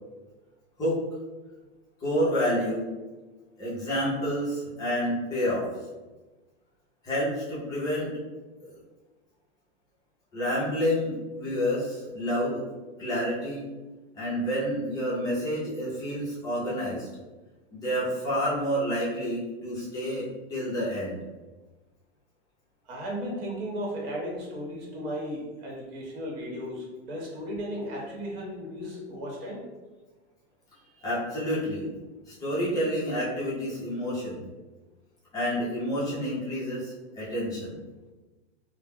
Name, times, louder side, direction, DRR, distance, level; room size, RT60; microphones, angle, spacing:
voice 1, 2.0-2.9 3.6-5.7 7.0-8.1 8.6-8.8 10.3-12.6 13.0-13.7 14.1-17.1 17.7-21.2 31.0-31.9 32.3-34.4 35.3-37.8, equal, 10° left, -8 dB, 0.5 m, -29 dB
voice 2, 22.8-29.7 30.9-31.0, equal, 60° right, -2 dB, 1.0 m, -35 dB
2.1 x 2.0 x 3.4 m, 1.2 s
supercardioid pair, 160°, 33 cm